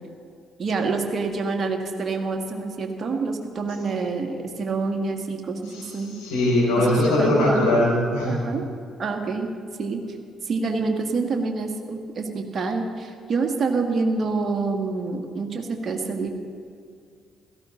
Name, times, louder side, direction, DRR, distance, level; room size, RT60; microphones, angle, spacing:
voice 1, 0.6-6.2 6.8-7.7 8.2-8.7 9.0-9.5 9.8-10.0 10.5-16.3, right 4 dB, 45° right, 3 dB, 1.8 m, -27 dB
voice 2, 6.1-8.4, left 1 dB, 75° left, -5 dB, 4.5 m, -21 dB
17.0 x 14.0 x 4.0 m, 2.2 s
hypercardioid pair, 45°, 0 cm